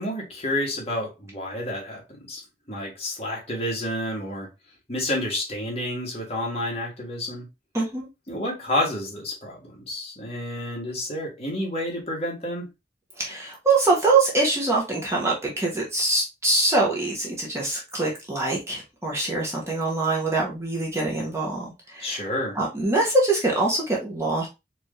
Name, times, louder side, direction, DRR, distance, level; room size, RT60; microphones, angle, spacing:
voice 1, 0.0-2.4 2.7-4.5 4.9-7.5 8.3-12.7 22.0-22.6, left 1 dB, 35° left, 1.6 m, -30 dB
voice 2, 7.7-8.1 13.2-24.5, right 2 dB, 15° right, 1.0 m, -24 dB
4.5 x 2.7 x 3.2 m
head